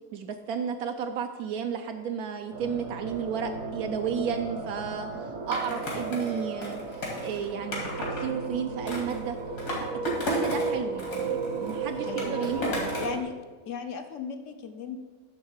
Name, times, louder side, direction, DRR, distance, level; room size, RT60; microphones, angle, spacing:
voice 1, 0.1-7.9 8.2-9.4 9.8-12.9, right 7 dB, 75° right, 6 dB, 1.0 m, -33 dB
sound 1, 2.5-13.2, right 4 dB, 55° right, 1.1 m, -35 dB
Skateboard, 5.5-8.2 8.9-10.7 11.0-13.2, left 1 dB, 90° left, 2.6 m, -34 dB
voice 2, 12.0-12.6 13.0-13.3 13.7-15.0, left 6 dB, 65° left, 7 dB, 0.9 m, -36 dB
10.5 x 3.6 x 7.1 m, 1.4 s
omnidirectional pair, 1.6 m